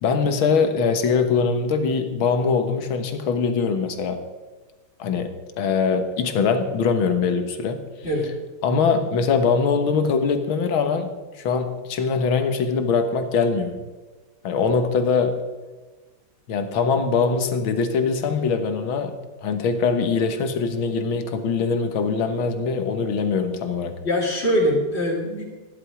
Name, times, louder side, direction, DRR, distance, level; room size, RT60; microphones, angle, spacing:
voice 1, 0.0-4.2 5.0-7.8 8.6-11.1 11.4-13.8 14.4-15.4 16.5-24.0, left 5 dB, 75° left, 8 dB, 2.1 m, -22 dB
voice 2, 24.0-25.4, equal, 30° left, -1 dB, 3.5 m, -22 dB
15.0 x 11.5 x 4.9 m, 1.3 s
omnidirectional pair, 2.3 m